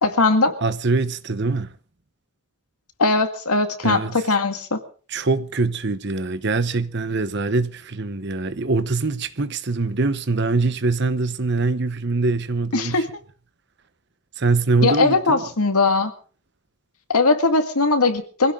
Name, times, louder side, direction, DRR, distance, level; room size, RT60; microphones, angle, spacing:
voice 1, 0.0-0.5 3.0-4.8 12.7-13.1 14.8-16.1 17.1-18.5, left 3 dB, 85° left, 2.0 m, -19 dB
voice 2, 0.6-1.7 3.8-4.1 5.1-13.0 14.4-15.5, right 3 dB, 50° right, 1.0 m, -23 dB
23.0 x 16.0 x 3.8 m
head